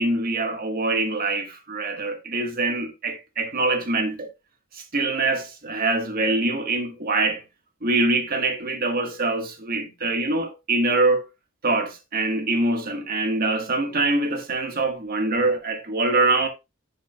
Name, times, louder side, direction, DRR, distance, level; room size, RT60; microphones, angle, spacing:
voice 1, 0.0-4.3 4.7-7.4 7.8-11.2 11.6-16.5, right 2 dB, 45° right, 1.4 m, -24 dB
10.5 x 5.8 x 2.3 m
head